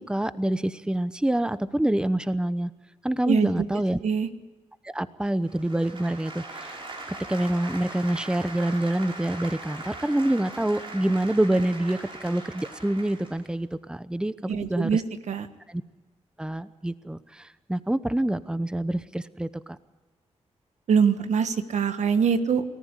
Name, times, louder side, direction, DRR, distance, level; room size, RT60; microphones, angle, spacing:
voice 1, 0.0-2.7 3.0-4.0 4.8-6.8 7.3-15.0 15.7-15.8 16.4-19.5, right 1 dB, 5° right, 14 dB, 0.9 m, -26 dB
voice 2, 3.3-4.3 14.5-15.5 20.9-22.6, right 6 dB, 80° right, 10 dB, 1.4 m, -24 dB
sound 1, 5.4-13.5, right 2 dB, 45° right, 6.0 m, -40 dB
28.0 x 14.5 x 8.2 m, 1.2 s
cardioid pair, 75°, 12 cm